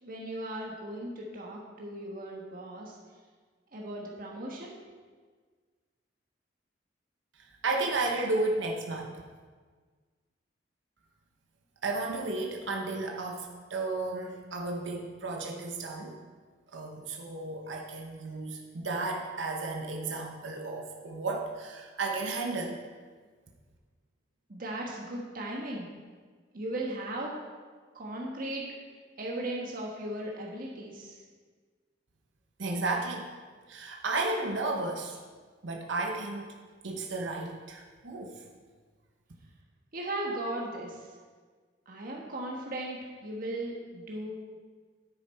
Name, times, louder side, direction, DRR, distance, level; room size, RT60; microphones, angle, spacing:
voice 1, 0.0-3.0 3.7-4.7 24.5-25.9 26.5-27.4 27.9-28.6 29.2-31.2 39.9-41.1 41.9-44.3, right 1 dB, 50° right, -2 dB, 1.4 m, -37 dB
voice 2, 7.4-9.2 11.8-16.2 16.7-22.8 32.6-33.3 33.7-35.2 35.6-36.5 36.8-38.4, right 3 dB, 85° right, 1 dB, 1.0 m, -33 dB
10.0 x 9.2 x 4.4 m, 1.5 s
head